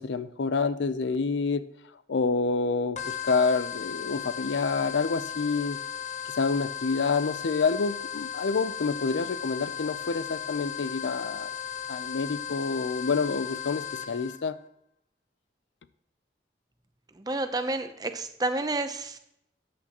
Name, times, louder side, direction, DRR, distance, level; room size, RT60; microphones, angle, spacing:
voice 1, 0.0-1.7 2.1-5.8 6.2-11.5 11.9-14.6, left 4 dB, 90° left, 14 dB, 0.5 m, -28 dB
sound 1, 3.0-14.4, left 9 dB, 40° left, 0.8 m, -36 dB
voice 2, 17.1-19.2, right 2 dB, 20° right, 9 dB, 0.6 m, -30 dB
13.5 x 8.6 x 2.9 m, 0.78 s
head